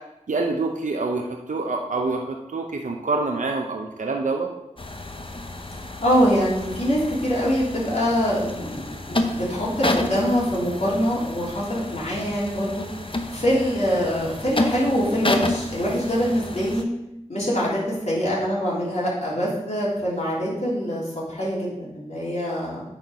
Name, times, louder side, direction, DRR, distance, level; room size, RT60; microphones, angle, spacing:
voice 1, 0.3-4.5, right 3 dB, 90° right, 2 dB, 0.7 m, -26 dB
sound 1, 4.8-16.8, left 2 dB, 45° left, 0.8 m, -30 dB
voice 2, 6.0-12.9 13.3-16.8 17.3-22.8, equal, 60° left, -6 dB, 3.3 m, -24 dB
9.0 x 4.5 x 5.6 m, 0.91 s
wide cardioid pair, 45°, 13 cm